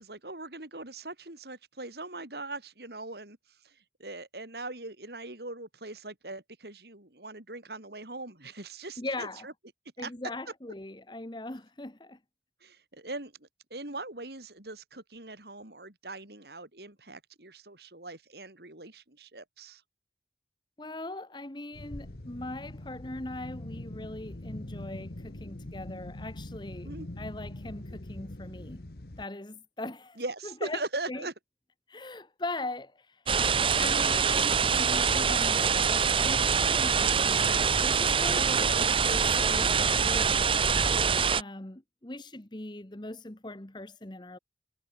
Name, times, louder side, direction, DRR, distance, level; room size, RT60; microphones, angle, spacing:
voice 1, 0.0-3.4 3.6-9.5 10.0-10.1 12.6-19.8 26.8-27.1 30.2-31.3 38.6-38.9, right 2 dB, 65° right, 4.5 m, -41 dB
voice 2, 9.0-9.5 10.0-12.2 20.8-28.9 29.2-30.8 31.1-31.3 31.9-33.2 33.8-40.7 41.3-44.4, left 2 dB, 25° left, 1.2 m, -40 dB
sound 1, 21.7-29.2, left 1 dB, 55° left, 1.4 m, -42 dB
sound 2, 33.3-41.4, right 6 dB, 30° right, 0.8 m, -25 dB
head